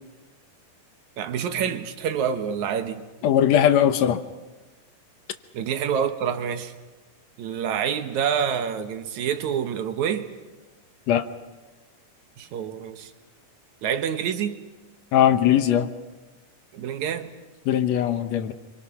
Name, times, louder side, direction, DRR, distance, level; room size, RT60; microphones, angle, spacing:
voice 1, 1.2-3.1 5.5-6.7 7.4-10.3 12.4-13.1 13.8-14.6 16.7-17.3, right 8 dB, 70° right, 8 dB, 2.4 m, -27 dB
voice 2, 3.2-4.2 11.1-11.3 15.1-15.9 17.7-18.5, left 10 dB, 70° left, 9 dB, 1.8 m, -19 dB
27.0 x 24.5 x 5.8 m, 1.2 s
omnidirectional pair, 3.8 m